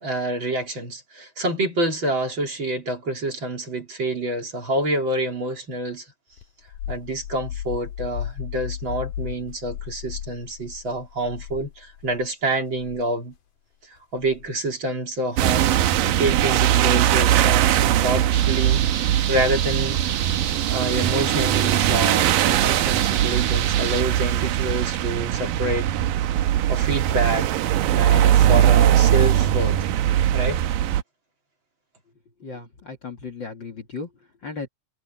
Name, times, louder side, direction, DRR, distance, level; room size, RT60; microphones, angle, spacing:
voice 1, 0.0-6.1 6.9-13.3 13.8-18.8 19.3-20.0 20.7-25.9 26.7-27.6 27.9-29.9 30.3-30.6, right 1 dB, 35° right, 3.8 m, -27 dB
sound 1, 6.4-12.3 12.7-13.0 14.2-14.5 15.7-16.1, left 10 dB, 75° left, 2.8 m, -35 dB
sound 2, 15.4-31.0, right 12 dB, 85° right, 2.6 m, -20 dB
sound 3, 18.3-24.0, right 8 dB, 60° right, 1.4 m, -30 dB
voice 2, 32.4-34.7, left 4 dB, 40° left, 2.3 m, -36 dB
omnidirectional pair, 3.8 m